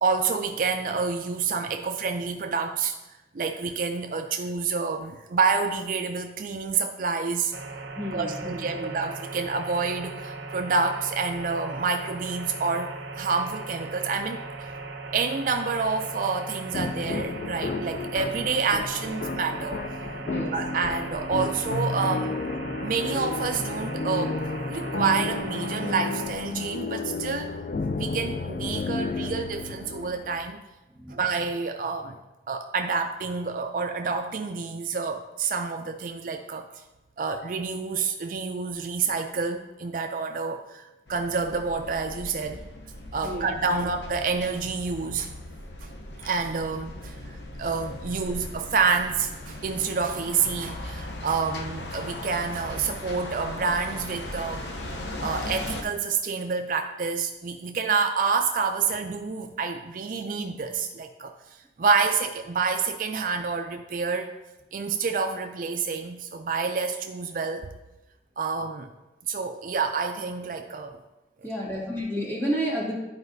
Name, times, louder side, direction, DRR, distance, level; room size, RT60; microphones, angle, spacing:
voice 1, 0.0-2.9 3.3-7.5 8.1-14.4 15.1-19.8 20.5-22.4 22.8-24.4 24.7-27.5 27.9-30.6 31.1-32.2 32.5-36.7 37.2-42.6 43.1-45.3 45.8-45.9 46.2-54.6 55.2-61.3 61.8-64.3 64.7-67.7 68.4-68.9 69.3-71.0, right 5 dB, 50° right, 5 dB, 0.4 m, -28 dB
sound 1, 7.5-26.3, right 3 dB, 85° right, 0.7 m, -38 dB
voice 2, 7.9-9.0 20.2-20.5 21.4-21.5 30.9-31.2 43.2-43.5 43.7-43.9 71.4-72.9, equal, 15° left, -5 dB, 1.9 m, -31 dB
sound 2, 16.7-30.4, left 3 dB, 45° left, 0.3 m, -32 dB
sound 3, 41.1-55.8, left 1 dB, 80° left, 0.8 m, -38 dB
11.0 x 4.8 x 2.7 m, 1.0 s
head